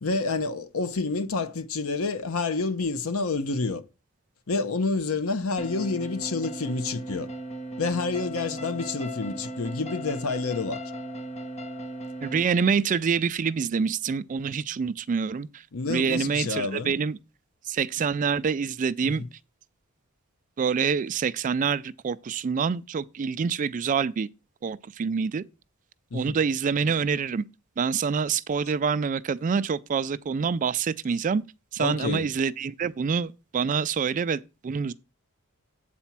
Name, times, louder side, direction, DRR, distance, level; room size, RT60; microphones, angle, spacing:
voice 1, 0.0-3.8 4.5-7.3 7.8-10.8 15.7-17.0 19.0-19.3 26.1-26.4 31.8-32.3, left 3 dB, 70° left, 0.8 m, -28 dB
sound 1, 5.6-12.4, right 1 dB, 30° left, 0.9 m, -37 dB
voice 2, 12.2-15.6 15.9-17.2 17.7-19.2 20.6-24.3 24.6-25.4 26.1-27.4 27.8-31.4 31.7-34.9, right 6 dB, 35° right, 0.3 m, -26 dB
8.1 x 4.3 x 5.9 m
head